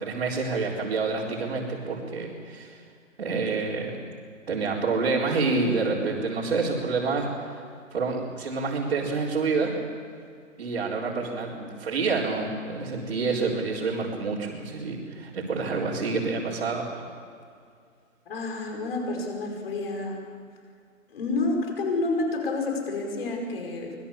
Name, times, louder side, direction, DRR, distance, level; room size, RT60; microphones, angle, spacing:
voice 1, 0.0-2.8 3.2-3.9 4.5-7.3 7.9-9.7 10.6-16.9, right 4 dB, 50° right, -6 dB, 4.2 m, -28 dB
voice 2, 18.3-20.2 21.1-24.0, left 3 dB, 45° left, 2 dB, 5.2 m, -29 dB
25.0 x 21.0 x 7.2 m, 2.2 s
hypercardioid pair, 165°, 41 cm